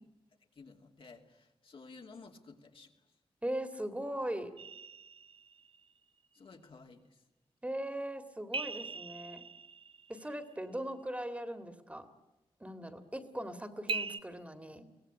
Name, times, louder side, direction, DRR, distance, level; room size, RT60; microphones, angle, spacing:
voice 1, 0.5-2.9 6.3-7.2, left 4 dB, 65° left, 2 dB, 2.7 m, -54 dB
voice 2, 3.4-4.5 7.6-9.4 10.1-12.1 12.6-14.8, right 1 dB, 15° right, 9 dB, 2.0 m, -39 dB
sound 1, 4.6-5.9 8.5-10.5 13.9-14.2, right 4 dB, 65° right, 0.9 m, -40 dB
23.5 x 18.0 x 10.0 m, 1.0 s
wide cardioid pair, 90°, 10 cm